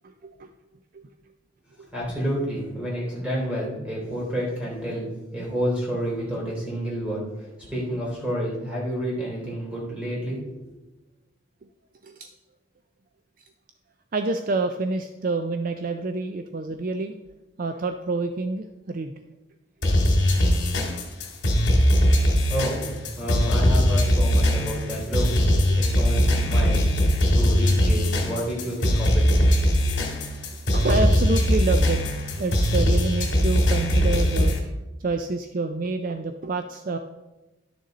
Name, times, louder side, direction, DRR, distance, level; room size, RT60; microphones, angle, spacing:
voice 1, 0.0-0.5 0.9-1.0 12.0-12.3 14.1-17.1 17.6-19.1 22.1-22.3 25.7-25.8 30.7-34.6 35.0-37.0, right 3 dB, 45° right, 7 dB, 0.4 m, -28 dB
voice 2, 1.9-5.1 5.3-10.6 22.5-25.3 25.8-27.1 27.3-29.3 29.9-30.0, equal, 5° right, -5 dB, 3.2 m, -29 dB
sound 1, 19.8-34.6, equal, 60° left, 2.4 m, -21 dB
11.5 x 6.5 x 4.0 m, 1.1 s
head